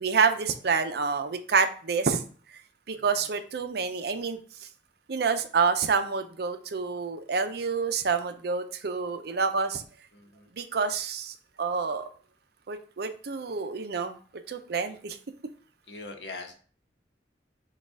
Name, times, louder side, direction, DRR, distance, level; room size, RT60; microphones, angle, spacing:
voice 1, 0.0-2.2 2.9-4.4 5.1-9.8 10.6-12.1 12.7-14.2 14.5-15.2, right 5 dB, 65° right, 9 dB, 0.5 m, -28 dB
voice 2, 2.9-3.3 10.1-10.5 15.9-16.5, left 3 dB, 75° left, 4 dB, 0.9 m, -42 dB
6.2 x 2.4 x 3.5 m, 0.42 s
head